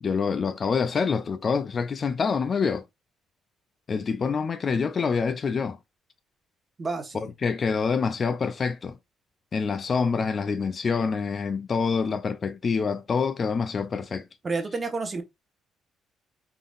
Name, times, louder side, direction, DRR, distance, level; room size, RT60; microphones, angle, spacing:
voice 1, 0.0-2.8 3.9-5.8 7.1-9.0 9.5-14.3, left 5 dB, 40° left, 0.4 m, -26 dB
voice 2, 6.8-7.3 14.4-15.2, right 3 dB, 30° right, 1.1 m, -30 dB
3.7 x 3.6 x 2.4 m
cardioid pair, 100°, 0 cm